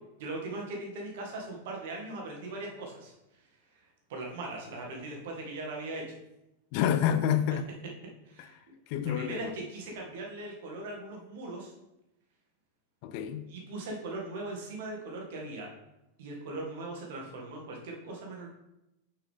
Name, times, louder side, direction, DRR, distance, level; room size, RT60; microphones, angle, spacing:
voice 1, 0.2-3.1 3.7-6.1 8.3-8.7 9.0-11.7 13.5-15.7 16.2-18.5, right 2 dB, 55° right, 1.7 m, -39 dB
voice 2, 6.7-7.7 8.4-8.5 8.9-9.5 13.0-13.6, left 9 dB, 45° left, 0.4 m, -28 dB
6.1 x 5.7 x 3.6 m
figure-of-eight pair, 90°, 0 cm